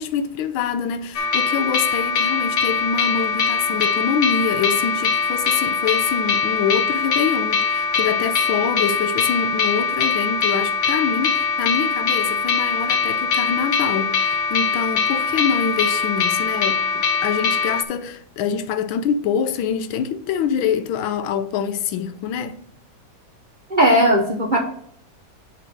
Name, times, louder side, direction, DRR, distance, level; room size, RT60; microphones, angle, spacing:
voice 1, 0.0-22.6, left 7 dB, 80° left, 1.4 m, -25 dB
sound 1, 1.1-17.8, left 5 dB, 65° left, 0.7 m, -22 dB
voice 2, 23.7-24.6, equal, 85° right, 0.4 m, -16 dB
6.5 x 3.9 x 6.3 m
omnidirectional pair, 2.2 m